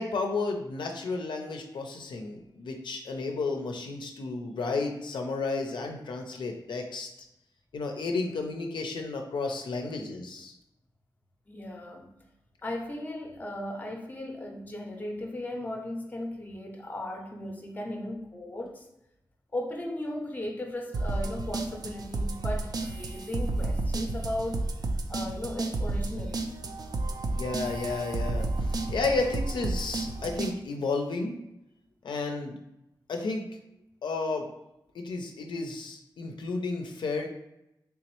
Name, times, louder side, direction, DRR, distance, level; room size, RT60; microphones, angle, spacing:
voice 1, 0.0-7.1 7.7-10.5 27.3-31.4 32.0-32.6 33.1-33.4 34.0-34.5 34.9-37.3, left 3 dB, 75° left, 0.4 m, -32 dB
voice 2, 11.5-12.2 12.6-18.9 19.5-24.7 25.1-26.4, left 1 dB, 20° left, 0.6 m, -36 dB
sound 1, 20.9-30.5, right 2 dB, 55° right, 0.4 m, -31 dB
3.4 x 3.0 x 3.0 m
wide cardioid pair, 110°, 8 cm